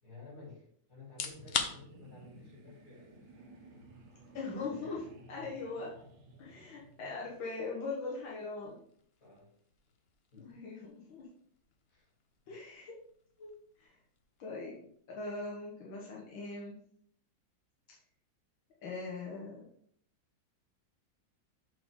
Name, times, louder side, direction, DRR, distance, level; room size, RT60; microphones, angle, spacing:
voice 1, 0.0-3.2 3.6-3.9 5.3-5.5 9.2-9.5 10.3-10.6 11.9-12.1 12.4-12.6, left 3 dB, 45° left, -5 dB, 3.8 m, -53 dB
sound 1, 1.0-15.9, left 6 dB, 65° left, 0.6 m, -46 dB
sound 2, 1.3-7.5, right 2 dB, 75° right, 1.7 m, -56 dB
voice 2, 4.3-5.9 6.4-8.8 10.4-11.3 12.5-12.9 13.4-13.5 13.8-14.0 14.4-16.8 17.9-18.0 18.8-19.7, left 3 dB, 85° left, -4 dB, 2.0 m, -41 dB
6.4 x 5.8 x 3.7 m, 0.64 s
omnidirectional pair, 2.1 m